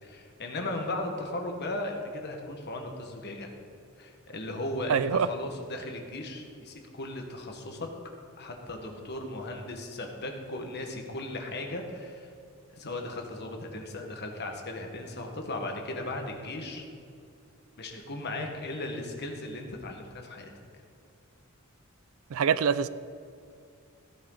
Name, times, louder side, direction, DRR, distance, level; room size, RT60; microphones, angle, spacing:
voice 1, 0.0-3.5 4.0-7.9 8.4-12.3 12.7-16.8 17.8-20.5, left 2 dB, 50° left, 3 dB, 1.5 m, -36 dB
voice 2, 4.9-5.3 22.3-22.9, right 7 dB, 70° right, 15 dB, 0.4 m, -24 dB
15.5 x 10.0 x 4.0 m, 2.4 s
head